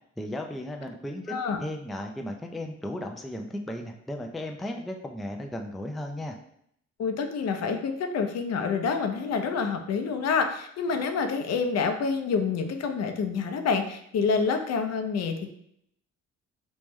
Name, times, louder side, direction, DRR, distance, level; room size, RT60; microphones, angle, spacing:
voice 1, 0.2-1.3 1.6-6.4, left 1 dB, ahead, 3 dB, 0.3 m, -35 dB
voice 2, 1.3-1.6 7.0-15.5, left 5 dB, 60° left, 6 dB, 0.6 m, -27 dB
3.1 x 3.0 x 3.5 m, 0.70 s
cardioid pair, 90°, 30 cm